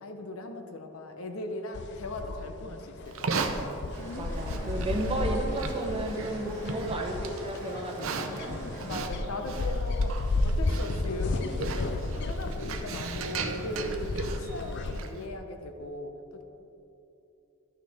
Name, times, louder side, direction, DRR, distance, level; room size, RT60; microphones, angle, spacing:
voice 1, 0.0-3.4 6.4-6.9 8.8-14.1 14.4-16.4, left 2 dB, 70° left, 5 dB, 0.8 m, -38 dB
sound 1, 1.7-15.0, left 2 dB, 50° left, 0.4 m, -33 dB
Livestock farm animals working animals, 3.1-15.3, right 4 dB, 65° right, 0.6 m, -37 dB
sound 2, 3.9-9.1, right 1 dB, 10° left, 2.2 m, -42 dB
voice 2, 4.2-8.6 12.9-13.3, right 2 dB, 25° right, 1 dB, 0.8 m, -33 dB
12.0 x 6.5 x 3.5 m, 2.8 s
head